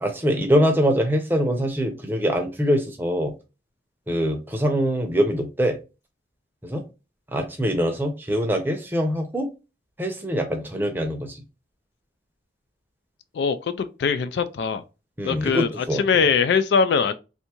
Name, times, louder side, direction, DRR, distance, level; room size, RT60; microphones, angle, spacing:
voice 1, 0.0-3.3 4.1-5.8 6.6-6.8 7.3-9.5 10.0-11.4 15.2-16.3, equal, 10° right, 0.6 m, -23 dB
voice 2, 13.3-14.8 15.3-17.1, left 5 dB, 70° left, 0.3 m, -22 dB
3.4 x 2.6 x 2.8 m
head